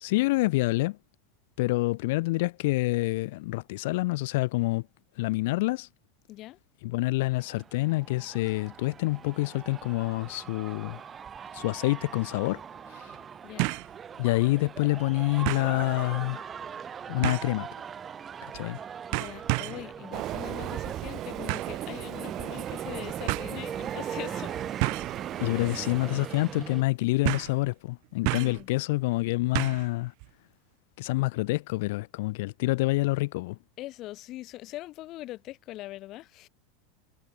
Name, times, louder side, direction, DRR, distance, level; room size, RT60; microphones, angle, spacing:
voice 1, 0.0-1.0 1.6-4.9 5.2-5.9 6.8-11.0 11.5-13.2 14.2-16.4 17.1-17.7 18.5-18.8 25.4-30.1 31.0-33.6, left 21 dB, 70° left, 0.5 m, -27 dB
voice 2, 6.3-6.6 13.4-13.7 19.1-24.6 28.3-28.7 33.8-36.5, left 16 dB, 45° left, 4.1 m, -42 dB
sound 1, 7.3-26.8, right 7 dB, 25° right, 4.5 m, -41 dB
sound 2, 11.7-11.8 13.6-13.9 14.4-14.5 15.5-15.7 17.2-17.6 18.5-18.8 19.1-19.9 21.5-21.8 22.8-22.9 23.3-23.5 24.8-25.2 25.7-25.9 26.2-26.3 27.2-27.6 28.3-28.6 29.6-29.9 30.2-30.3, right 40 dB or more, 60° right, 0.6 m, -30 dB
Train, 20.1-26.8, right 14 dB, 45° right, 1.2 m, -37 dB
supercardioid pair, 115°, 0 cm